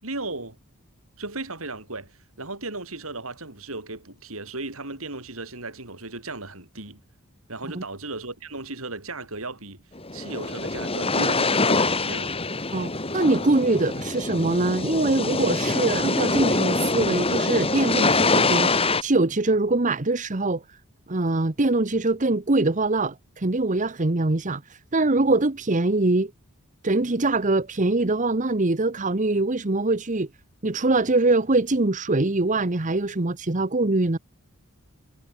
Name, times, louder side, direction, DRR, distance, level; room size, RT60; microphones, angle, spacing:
voice 1, 0.0-0.6 1.2-7.0 7.5-9.8 10.1-12.3, right 2 dB, 70° right, 6.3 m, -36 dB
sound 1, 10.0-19.0, left 3 dB, 25° left, 4.4 m, -24 dB
voice 2, 12.7-20.8 21.1-26.3 26.8-30.3 30.6-34.2, right 2 dB, 35° right, 1.1 m, -23 dB
head